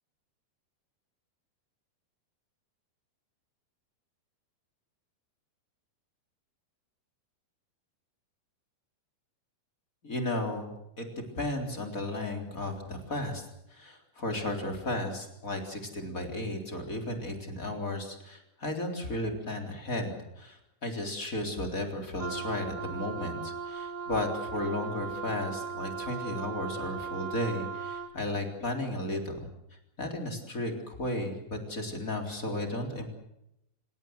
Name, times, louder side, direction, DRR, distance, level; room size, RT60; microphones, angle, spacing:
voice 1, 10.0-10.7 11.0-11.1 11.4-29.5 30.0-33.1, left 1 dB, 20° left, 3 dB, 3.6 m, -34 dB
Wind instrument woodwind instrument, 22.2-28.2, right 5 dB, 45° right, 2.2 m, -38 dB
28.5 x 17.5 x 7.9 m, 0.83 s
omnidirectional pair, 5.1 m